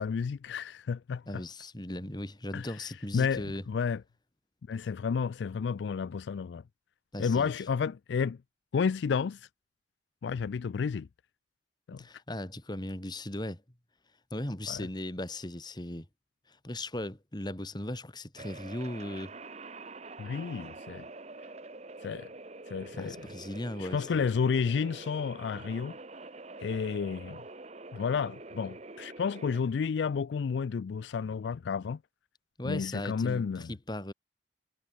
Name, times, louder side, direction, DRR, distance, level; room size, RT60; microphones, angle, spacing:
voice 1, 0.0-1.4 2.5-2.8 3.1-4.0 4.7-6.6 7.2-8.4 8.7-9.5 10.2-11.1 11.9-12.0 14.7-14.9 20.2-21.1 22.0-22.3 22.7-23.3 23.8-26.0 26.6-27.4 27.9-32.0 32.6-33.7, left 6 dB, 80° left, 0.4 m, -31 dB
voice 2, 1.3-3.6 7.1-7.5 12.0-13.6 14.3-16.1 16.5-19.3 22.9-24.3 32.6-34.1, left 1 dB, 25° left, 2.2 m, -37 dB
sound 1, 18.4-29.6, right 3 dB, 40° right, 1.4 m, -46 dB
head